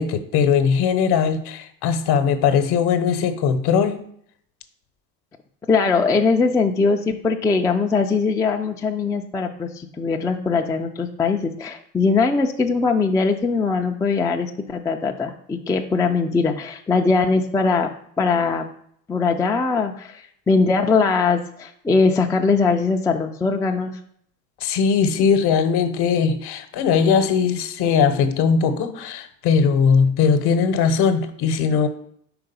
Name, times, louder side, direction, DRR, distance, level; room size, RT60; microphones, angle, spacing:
voice 1, 0.0-4.0 24.6-31.9, left 6 dB, 50° left, 9 dB, 1.0 m, -19 dB
voice 2, 5.7-17.9 18.2-18.7 19.1-24.0, left 4 dB, 10° left, 3 dB, 0.4 m, -21 dB
4.9 x 3.8 x 5.2 m, 0.66 s
hypercardioid pair, 70°, 49 cm